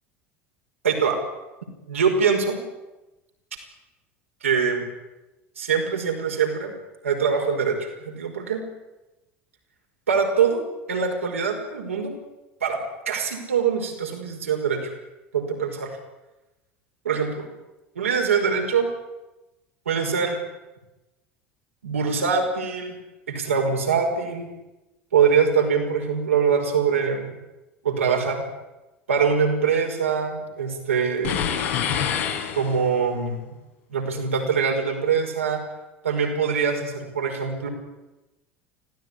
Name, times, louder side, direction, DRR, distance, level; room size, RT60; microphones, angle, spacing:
voice 1, 0.8-1.2 1.9-2.6 4.4-4.8 5.6-6.8 7.0-8.6 10.1-12.1 12.6-12.8 13.1-14.9 15.3-16.0 17.0-17.5 18.0-18.9 19.9-20.4 21.8-23.0 23.3-24.5 25.1-27.4 27.8-28.4 29.1-31.4 32.6-33.5 33.9-35.6 36.0-37.7, right 6 dB, 80° right, 3 dB, 5.4 m, -23 dB
sound 1, 31.2-33.1, left 8 dB, 70° left, 4.3 m, -26 dB
25.5 x 17.0 x 10.0 m, 1.0 s
figure-of-eight pair, 70°, 7 cm